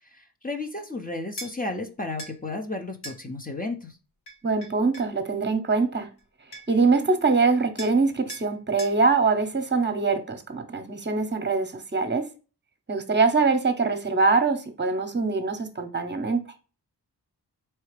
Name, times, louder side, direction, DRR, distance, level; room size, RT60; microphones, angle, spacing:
voice 1, 0.1-4.0, left 2 dB, 20° left, 0.9 m, -33 dB
sound 1, 1.4-1.5 2.2-2.4 3.0-3.2 4.3-5.1 6.2-6.3 6.5-6.9 7.8-8.0 8.3-8.5 8.8-9.0, equal, 75° left, 1.4 m, -40 dB
voice 2, 4.4-6.1 6.7-12.3 12.9-16.4, right 4 dB, 25° right, 0.9 m, -23 dB
4.5 x 2.8 x 3.2 m
cardioid pair, 55°, 40 cm